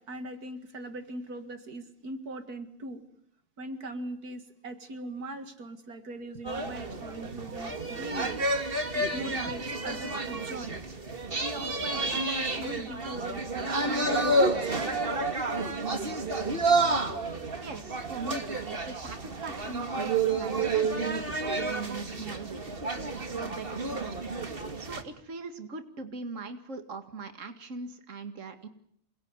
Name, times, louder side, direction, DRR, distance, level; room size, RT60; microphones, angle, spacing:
voice 1, 0.0-3.0 3.6-8.4 8.9-10.8 11.4-15.0 16.9-17.0, right 1 dB, 80° right, 8 dB, 2.5 m, -40 dB
sound 1, 6.4-25.0, right 2 dB, 35° right, 2.3 m, -30 dB
voice 2, 17.6-22.6 23.0-24.3 24.8-28.7, right 4 dB, 55° right, 8 dB, 2.5 m, -41 dB
28.0 x 21.0 x 9.7 m, 0.69 s
omnidirectional pair, 1.6 m